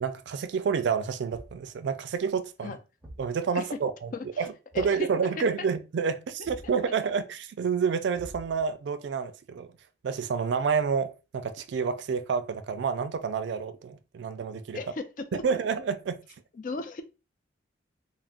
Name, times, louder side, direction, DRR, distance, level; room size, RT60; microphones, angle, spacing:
voice 1, 0.0-2.8 3.2-4.1 4.4-9.7 10.0-14.8 15.4-16.2, right 6 dB, 70° right, 0.3 m, -29 dB
Thump thud, 1.3-1.7 3.0-3.4 4.7-5.1 6.4-6.8 8.1-8.7, right 1 dB, 5° right, 0.7 m, -46 dB
voice 2, 4.1-4.5 4.7-5.0 14.7-15.4 16.5-17.0, left 3 dB, 45° left, 0.4 m, -36 dB
3.4 x 2.0 x 2.4 m
head